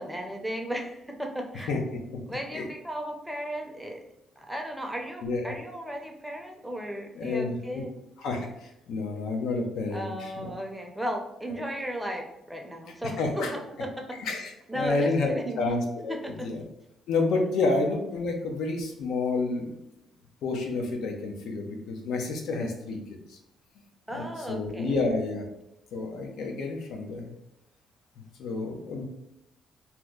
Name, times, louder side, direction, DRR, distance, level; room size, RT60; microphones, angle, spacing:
voice 1, 0.0-1.7 2.3-4.0 4.4-7.9 9.9-13.4 13.8-13.9 14.7-15.6 16.1-16.5 24.1-25.1, equal, 5° right, 2 dB, 0.6 m, -35 dB
voice 2, 5.2-5.6 7.2-7.6 8.2-10.5 13.2-13.5 14.2-16.6 17.1-19.7 20.4-23.4 24.1-25.4 25.9-27.3 28.2-29.0, left 3 dB, 80° left, 2 dB, 0.7 m, -29 dB
2.9 x 2.1 x 3.6 m, 0.87 s
cardioid pair, 90°, 0 cm